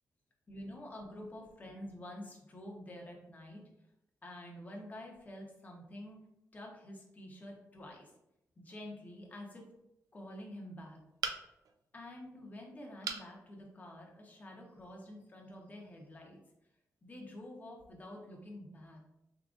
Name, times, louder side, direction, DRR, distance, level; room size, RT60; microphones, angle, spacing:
voice 1, 0.5-3.6 4.2-6.2 6.5-8.1 8.6-9.7 10.1-11.0 11.9-16.4 17.0-19.0, left 1 dB, 25° left, 0 dB, 0.9 m, -48 dB
sound 1, 11.2-11.8 13.0-13.3 13.9-14.0 14.3-14.4, right 6 dB, 80° right, 0.4 m, -38 dB
4.0 x 3.8 x 2.4 m, 0.85 s
wide cardioid pair, 160°, 6 cm